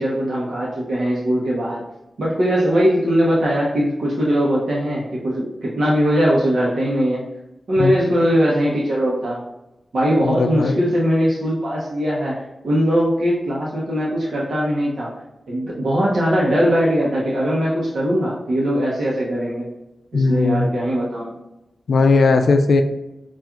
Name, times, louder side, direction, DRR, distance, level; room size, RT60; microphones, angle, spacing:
voice 1, 0.0-1.8 2.2-7.2 7.7-9.4 9.9-15.1 15.5-19.7 20.1-21.3, equal, 85° right, -5 dB, 0.8 m, -20 dB
voice 2, 10.3-10.8 20.1-20.7 21.9-22.8, left 3 dB, 85° left, 7 dB, 0.3 m, -17 dB
5.7 x 2.4 x 2.4 m, 0.95 s
wide cardioid pair, 100°, 0 cm